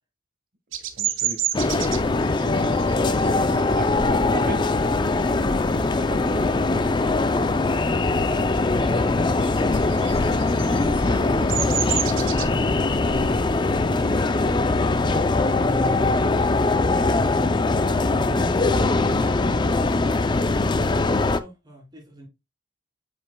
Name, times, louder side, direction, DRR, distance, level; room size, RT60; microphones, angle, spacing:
Bird vocalization bird call bird song, 0.7-5.9 6.3-6.7 7.0-8.2 8.5-15.8, right 11 dB, 80° right, 0.8 m, -31 dB
voice 1, 1.0-1.8 2.4-2.7 3.8-4.8 5.0-9.4 18.1-19.0, right 2 dB, 50° right, 1.5 m, -39 dB
sound 1, 1.5-21.4, left 3 dB, 25° left, 0.4 m, -21 dB
voice 2, 18.1-22.3, equal, 20° right, 2.9 m, -41 dB
7.8 x 5.8 x 2.2 m
head